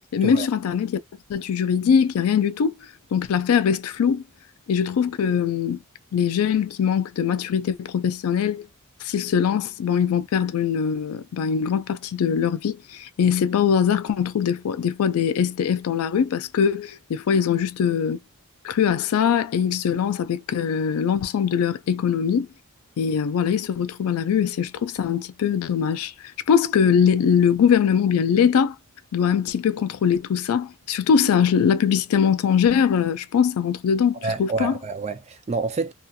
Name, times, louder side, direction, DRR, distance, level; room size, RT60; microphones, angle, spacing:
voice 1, 0.1-1.0 1.3-2.7 3.1-4.2 4.7-5.8 6.1-8.7 9.0-18.2 18.6-22.5 23.0-26.1 26.5-28.8 29.1-34.7, left 7 dB, 80° left, 0.3 m, -22 dB
voice 2, 34.2-35.9, right 4 dB, 30° right, 0.4 m, -28 dB
2.7 x 2.4 x 2.2 m
head